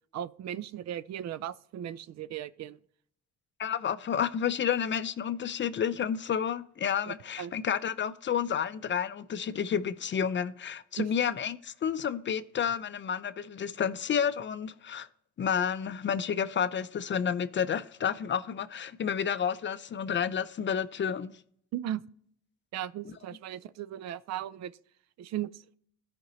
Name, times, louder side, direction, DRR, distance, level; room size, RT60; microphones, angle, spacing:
voice 1, 0.1-2.8 7.1-7.5 11.0-11.1 21.7-22.0 22.7-24.7 25.2-25.6, right 11 dB, 60° right, 0.4 m, -37 dB
voice 2, 3.6-15.1 15.4-21.4, left 8 dB, 40° left, 0.5 m, -30 dB
13.5 x 5.1 x 3.1 m
cardioid pair, 90°, 30 cm